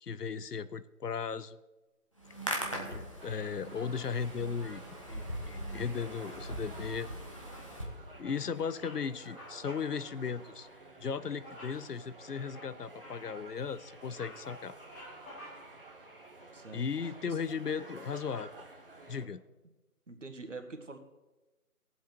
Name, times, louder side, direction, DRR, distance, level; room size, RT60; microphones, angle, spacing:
voice 1, 0.0-1.6 2.9-7.1 8.2-10.7 11.0-14.7 16.7-18.5 19.1-19.4, left 6 dB, 80° left, 15 dB, 0.8 m, -36 dB
Hands, 2.2-7.8, equal, 20° left, 1.0 m, -41 dB
sound 1, 3.2-19.3, right 2 dB, 35° right, 1.3 m, -51 dB
Bird vocalization bird call bird song, 7.5-7.9 8.2-8.5 8.7-9.0 9.3-9.9 10.2-10.4 11.4-11.8 12.3-13.5 13.9-15.8, left 1 dB, 60° left, 3.9 m, -51 dB
voice 2, 16.5-17.4 20.1-21.0, right 3 dB, 50° right, 6 dB, 1.5 m, -46 dB
17.5 x 7.8 x 4.5 m, 1.1 s
figure-of-eight pair, 170°, 46 cm